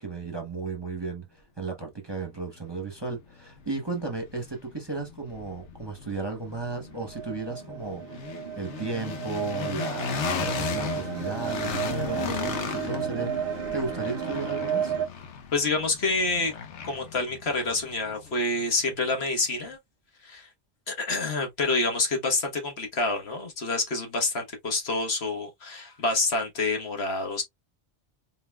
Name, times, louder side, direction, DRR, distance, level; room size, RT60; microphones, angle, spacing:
voice 1, 0.0-14.9, right 3 dB, 25° right, 0.9 m, -35 dB
sound 1, 2.6-2.7 3.2-19.1, left 7 dB, 80° left, 1.1 m, -36 dB
sound 2, 6.4-15.1, right 8 dB, 60° right, 0.8 m, -33 dB
voice 2, 15.5-16.5 16.8-19.8 20.2-20.5 20.9-27.4, left 3 dB, 65° left, 1.5 m, -27 dB
4.0 x 4.0 x 2.3 m
omnidirectional pair, 1.2 m